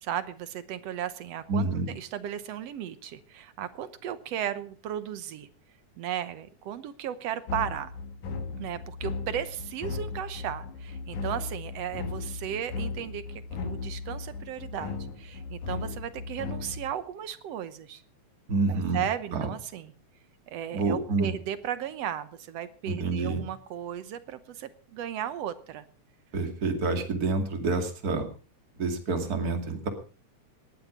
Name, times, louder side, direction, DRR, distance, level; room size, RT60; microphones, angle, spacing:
voice 1, 0.0-5.5 6.0-7.9 8.6-18.0 18.7-19.9 20.5-25.8, right 10 dB, 65° right, 13 dB, 1.9 m, -35 dB
voice 2, 1.5-1.9 18.5-19.0 19.3-19.5 20.7-21.3 22.9-23.4 26.3-28.3 28.8-29.9, right 3 dB, 30° right, 5 dB, 2.7 m, -28 dB
sound 1, 7.5-16.9, left 4 dB, 75° left, 3.3 m, -36 dB
18.5 x 12.0 x 5.1 m, 0.37 s
omnidirectional pair, 3.5 m